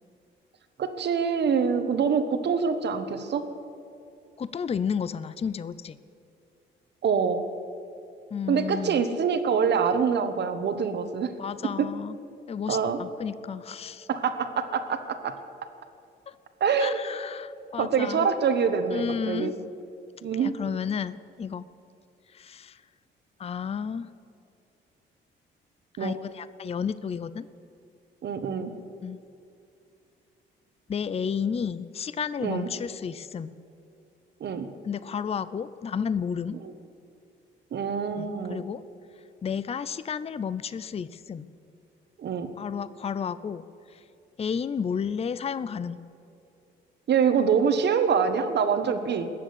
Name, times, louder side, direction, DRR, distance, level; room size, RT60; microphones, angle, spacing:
voice 1, 0.8-3.4 7.0-7.4 8.5-11.3 11.8-11.9 12.7-13.0 14.1-15.3 16.6-17.0 17.8-19.5 20.2-20.5 26.0-26.2 28.2-28.7 32.4-32.7 34.4-34.7 37.7-38.6 42.2-42.5 47.1-49.3, right 6 dB, 60° right, 9 dB, 1.4 m, -25 dB
voice 2, 4.4-6.0 8.3-9.0 11.4-12.2 12.5-14.1 16.3-16.4 16.8-18.3 18.9-19.5 20.3-21.7 22.3-22.8 23.4-24.1 26.0-27.5 29.0-29.2 30.9-33.5 34.8-36.6 38.2-38.8 39.4-41.5 42.6-44.0 44.4-46.0, left 7 dB, 30° left, 16 dB, 0.5 m, -32 dB
19.5 x 7.4 x 9.8 m, 2.5 s
cardioid pair, 90°, 20 cm